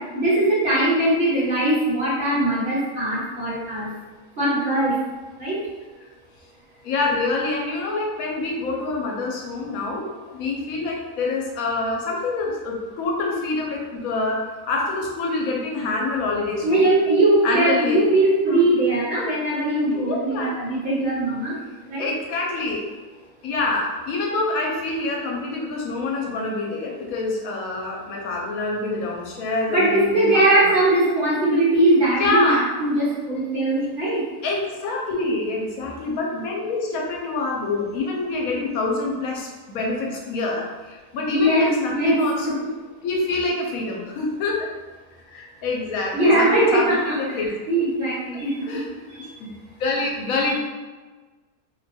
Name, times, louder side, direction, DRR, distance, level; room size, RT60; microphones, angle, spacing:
voice 1, 0.0-3.9 4.4-5.0 5.4-5.6 16.6-21.5 21.9-22.1 29.7-34.2 41.3-42.2 46.1-48.5 49.2-49.3, right 1 dB, 40° right, -8 dB, 1.2 m, -20 dB
voice 2, 6.8-16.9 17.4-18.0 18.5-18.6 19.9-20.6 22.0-22.9 23.4-30.8 32.2-32.7 33.8-34.2 34.4-42.6 43.0-44.7 45.3-47.8 48.6-49.5 49.8-50.6, left 3 dB, 80° left, -1 dB, 1.1 m, -26 dB
2.8 x 2.2 x 4.1 m, 1.3 s
omnidirectional pair, 1.5 m